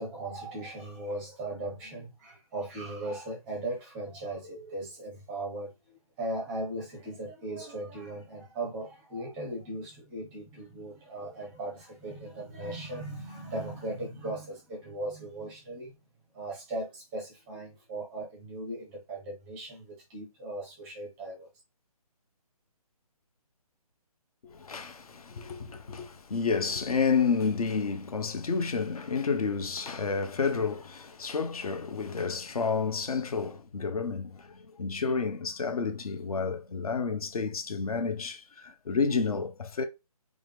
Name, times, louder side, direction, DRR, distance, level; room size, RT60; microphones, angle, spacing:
voice 1, 0.0-16.0 16.3-21.5, right 1 dB, 5° right, 0.5 m, -38 dB
voice 2, 24.4-39.8, left 5 dB, 70° left, 0.8 m, -30 dB
4.9 x 2.0 x 3.4 m
hypercardioid pair, 165°, 19 cm